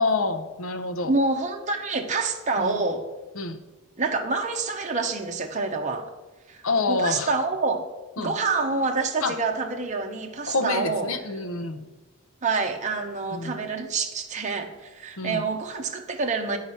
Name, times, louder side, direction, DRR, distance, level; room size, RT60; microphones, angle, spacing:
voice 1, 0.0-1.1 2.6-2.8 3.3-3.6 6.6-7.3 8.2-8.4 9.2-9.4 10.5-11.9 13.3-13.6 15.2-15.4, left 3 dB, 85° left, 8 dB, 0.8 m, -27 dB
voice 2, 1.1-3.0 4.0-6.1 6.5-6.6 6.9-7.8 8.2-11.1 12.4-16.6, right 3 dB, 35° right, 3 dB, 0.8 m, -27 dB
9.2 x 4.8 x 5.6 m, 1.2 s
head